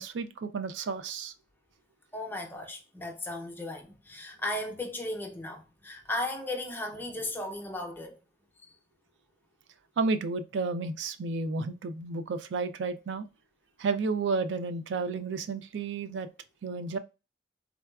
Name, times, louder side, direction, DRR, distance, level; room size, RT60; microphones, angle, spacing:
voice 1, 0.0-1.3 10.0-13.3 13.8-16.3 16.6-17.0, right 4 dB, 90° right, 0.4 m, -31 dB
voice 2, 2.1-8.2, left 1 dB, 10° left, 0.5 m, -36 dB
3.7 x 2.3 x 2.2 m
head